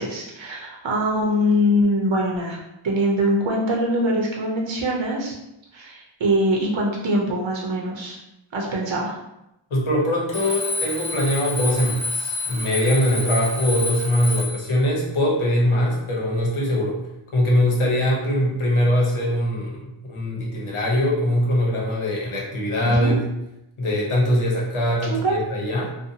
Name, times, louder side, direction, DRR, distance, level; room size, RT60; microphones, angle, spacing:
voice 1, 0.0-2.6 2.8-5.3 5.7-8.2 8.5-9.2 23.0-23.2 25.0-25.4, equal, 65° right, -2 dB, 0.7 m, -23 dB
voice 2, 9.7-17.0 17.3-23.2 23.8-26.0, left 1 dB, 80° left, -3 dB, 0.9 m, -22 dB
Alarm, 10.3-14.7, left 3 dB, 15° left, 0.7 m, -29 dB
2.6 x 2.2 x 2.7 m, 0.87 s
wide cardioid pair, 55°, 50 cm